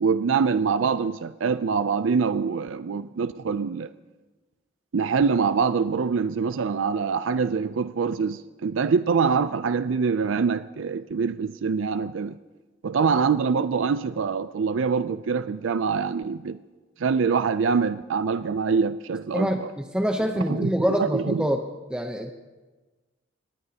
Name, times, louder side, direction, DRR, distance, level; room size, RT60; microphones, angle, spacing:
voice 1, 0.0-3.9 4.9-12.4 12.8-16.6 17.0-19.7 20.5-20.7 21.0-21.5, right 5 dB, 85° right, 13 dB, 0.5 m, -24 dB
voice 2, 19.3-21.6 21.9-22.3, equal, 5° right, 3 dB, 0.7 m, -25 dB
25.5 x 19.0 x 2.9 m, 1.2 s
head